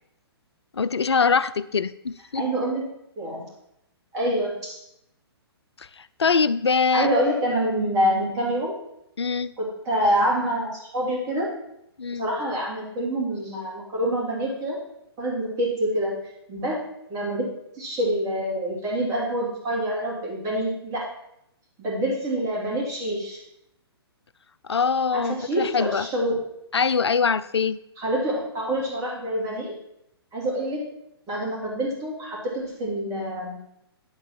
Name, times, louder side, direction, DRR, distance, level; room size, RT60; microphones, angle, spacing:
voice 1, 0.7-2.4 5.8-7.1 9.2-9.5 12.0-12.3 24.6-26.1 26.7-27.8, left 5 dB, 80° left, 16 dB, 0.4 m, -23 dB
voice 2, 2.3-2.9 3.2-3.4 4.1-4.8 6.9-8.8 9.6-11.5 12.1-14.8 15.2-16.2 16.5-16.8 17.1-17.5 17.8-21.1 21.8-23.4 25.1-26.4 28.0-29.7 30.3-30.8 31.3-33.6, right 1 dB, 25° right, -3 dB, 2.9 m, -26 dB
9.6 x 4.1 x 6.0 m, 0.81 s
figure-of-eight pair, 125°, 14 cm